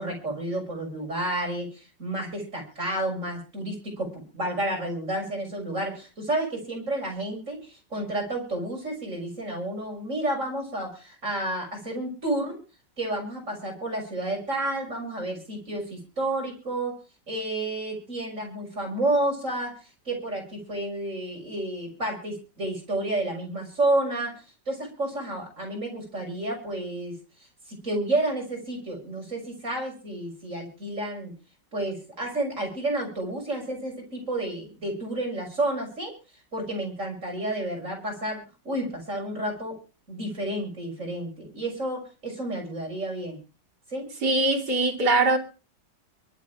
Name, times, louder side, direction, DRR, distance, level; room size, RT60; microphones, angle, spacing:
voice 1, 0.0-12.6 13.0-16.9 17.3-19.7 20.0-24.3 24.7-27.1 27.7-31.3 31.7-36.1 36.5-39.8 40.1-43.4 43.9-44.0, right 1 dB, 45° right, 6.8 m, -30 dB
voice 2, 44.2-45.4, right 2 dB, 65° right, 3.7 m, -22 dB
24.0 x 8.6 x 5.0 m
omnidirectional pair, 1.9 m